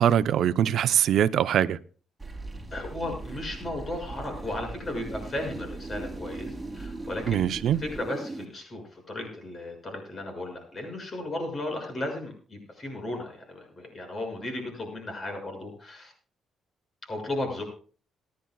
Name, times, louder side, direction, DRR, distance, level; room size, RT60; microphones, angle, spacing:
voice 1, 0.0-1.8 7.3-7.8, right 10 dB, 70° right, 0.7 m, -22 dB
sound 1, 2.2-8.5, right 2 dB, 10° right, 3.4 m, -39 dB
voice 2, 2.7-7.4 7.8-16.1 17.0-17.6, left 1 dB, 40° left, 6.4 m, -35 dB
27.5 x 10.5 x 2.4 m
cardioid pair, 90°, 0 cm